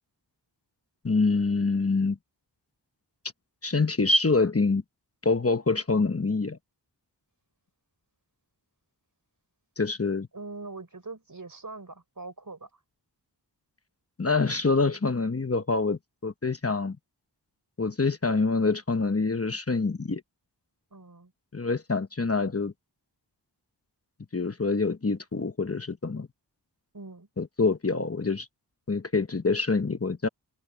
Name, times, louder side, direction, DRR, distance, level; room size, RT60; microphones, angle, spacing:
voice 1, 1.0-2.2 3.6-4.8 5.2-6.6 9.8-10.3 14.2-17.0 17.8-20.2 21.5-22.7 24.3-26.3 27.4-28.5 28.9-30.3, left 3 dB, 35° left, 1.0 m, -26 dB
voice 2, 10.3-12.7 20.9-21.3 26.9-27.3, right 3 dB, 50° right, 4.5 m, -42 dB
wide cardioid pair, 60°, 42 cm